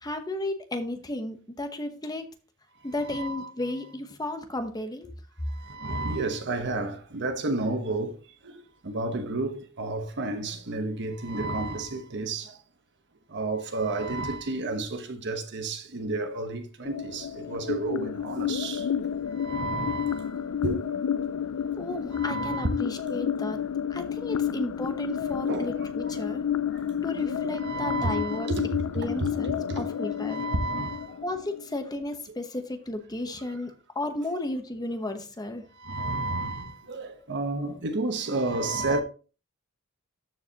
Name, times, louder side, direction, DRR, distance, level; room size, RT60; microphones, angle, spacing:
voice 1, 0.0-2.3 2.8-5.1 21.8-23.6 23.9-26.5 27.0-28.5 29.0-30.5 31.2-35.6 37.6-37.8, left 1 dB, 15° left, 0.9 m, -34 dB
voice 2, 3.0-3.5 5.6-8.2 8.4-12.5 13.3-18.9 19.4-20.2 20.6-20.8 22.1-22.7 24.4-24.6 25.5-25.7 27.2-29.8 30.3-31.1 33.2-33.3 35.8-39.0, right 2 dB, 50° right, 1.0 m, -31 dB
sound 1, 16.8-31.8, left 8 dB, 70° left, 0.4 m, -31 dB
13.0 x 4.8 x 2.9 m
head